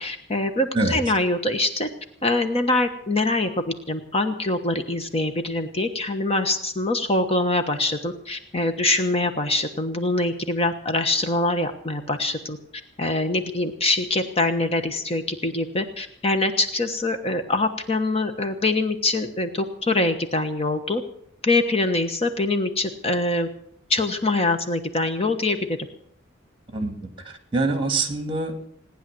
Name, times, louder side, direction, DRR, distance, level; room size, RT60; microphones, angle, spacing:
voice 1, 0.0-1.9 2.2-12.6 13.0-21.0 21.4-23.5 23.9-25.6, left 2 dB, 30° left, 7 dB, 1.2 m, -24 dB
voice 2, 26.7-28.5, right 3 dB, 25° right, 6 dB, 2.5 m, -25 dB
18.5 x 10.0 x 7.7 m, 0.66 s
head